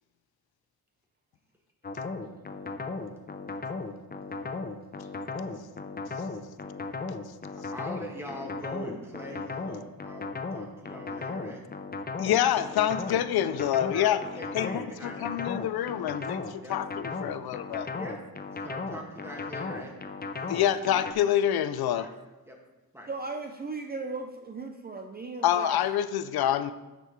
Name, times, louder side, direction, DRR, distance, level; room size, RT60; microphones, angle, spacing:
sound 1, 1.8-21.1, left 4 dB, 25° left, 0.6 m, -36 dB
voice 1, 7.7-11.6 13.1-13.3 13.9-15.2 16.6-16.8 17.9-18.2 18.5-19.9 20.4-20.6 21.9-22.1 22.5-22.6 22.9-23.1, equal, 5° right, -1 dB, 1.8 m, -42 dB
voice 2, 12.2-14.2 14.5-17.9 20.5-22.1 25.4-26.7, left 11 dB, 85° left, 13 dB, 0.5 m, -27 dB
voice 3, 23.1-25.8, right 3 dB, 25° right, 4 dB, 0.5 m, -37 dB
9.7 x 6.7 x 3.1 m, 1.1 s
cardioid pair, 90°, 36 cm